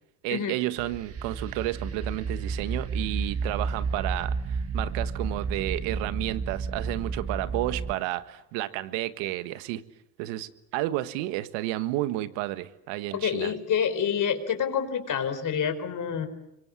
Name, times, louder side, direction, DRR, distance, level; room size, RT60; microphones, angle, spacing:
voice 1, 0.2-9.8 10.2-13.5, right 16 dB, 70° right, 13 dB, 1.6 m, -31 dB
sound 1, 0.8-7.9, right 5 dB, 30° right, 1.7 m, -32 dB
voice 2, 13.1-16.3, left 8 dB, 40° left, 8 dB, 4.6 m, -27 dB
25.5 x 23.0 x 8.4 m, 0.83 s
supercardioid pair, 85°, 45 cm